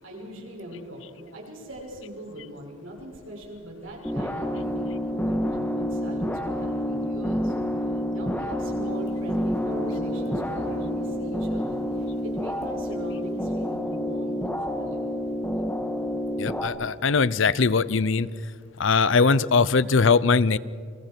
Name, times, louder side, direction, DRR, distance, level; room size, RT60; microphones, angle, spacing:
voice 1, 0.0-7.5 8.1-15.0, equal, 80° right, -1 dB, 6.3 m, -40 dB
sound 1, 4.0-16.7, equal, 10° left, 1.6 m, -28 dB
Guitar, 9.1-9.2 9.6-13.8, equal, 55° right, 3.0 m, -40 dB
voice 2, 16.4-18.3 18.8-20.6, left 4 dB, 70° left, 18 dB, 0.7 m, -21 dB
30.0 x 23.5 x 4.6 m, 2.2 s
head